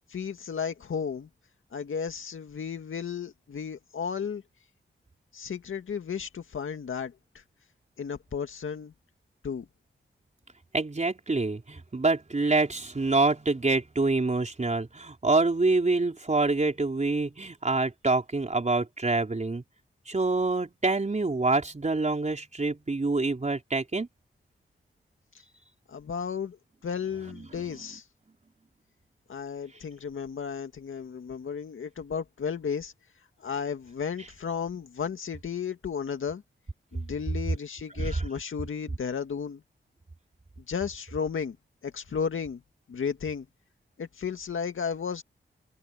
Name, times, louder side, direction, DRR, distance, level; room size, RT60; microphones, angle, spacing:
voice 1, 0.1-1.3 1.7-4.4 5.3-7.1 8.0-8.9 9.4-9.7 25.9-26.6 26.8-28.0 29.3-32.9 33.4-36.4 36.9-39.6 40.7-41.6 41.8-42.6 42.9-43.5 44.0-45.2, left 6 dB, 80° left, 2.1 m, -33 dB
voice 2, 10.7-19.6 20.1-24.1 38.0-38.2, right 3 dB, 35° right, 4.2 m, -26 dB
cardioid pair, 65°, 20 cm